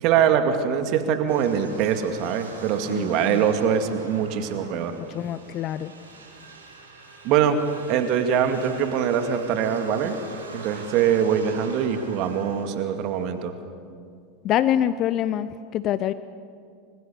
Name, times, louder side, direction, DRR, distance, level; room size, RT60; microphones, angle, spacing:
voice 1, 0.0-4.9 7.2-7.6 7.9-10.2 10.5-13.5, right 8 dB, 50° right, 7 dB, 2.3 m, -23 dB
sound 1, 1.3-13.4, right 3 dB, 80° right, 6.2 m, -43 dB
voice 2, 2.9-3.4 5.1-5.9 14.4-16.1, left 11 dB, 45° left, 14 dB, 0.7 m, -25 dB
25.5 x 25.5 x 7.0 m, 2.3 s
hypercardioid pair, 85°, 0 cm